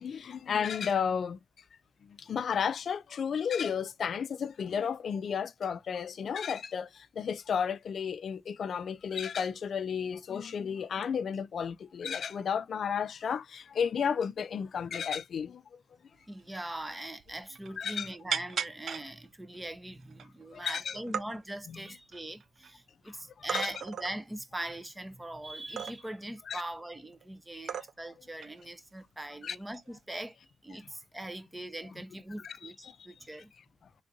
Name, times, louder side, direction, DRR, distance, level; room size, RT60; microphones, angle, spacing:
voice 1, 0.0-1.4 2.2-15.6 17.8-18.1 20.5-21.0 21.7-21.8 23.4-23.7 26.5-26.6 27.7-27.8 29.4-29.6 32.4-33.0, left 7 dB, 65° left, 0.3 m, -33 dB
voice 2, 16.3-30.4 30.6-33.5, right 1 dB, 15° right, 0.6 m, -41 dB
sound 1, 16.4-16.5 16.8-16.9 17.2-17.8 18.3-19.1 19.7-19.8 20.1-20.7 20.9-21.3 21.9-22.7 23.5-24.2 25.8-26.2 27.1-27.2 27.7-28.1 28.4-28.6 29.7-30.0, right 7 dB, 70° right, 0.3 m, -36 dB
3.5 x 2.5 x 2.5 m
cardioid pair, 75°, 0 cm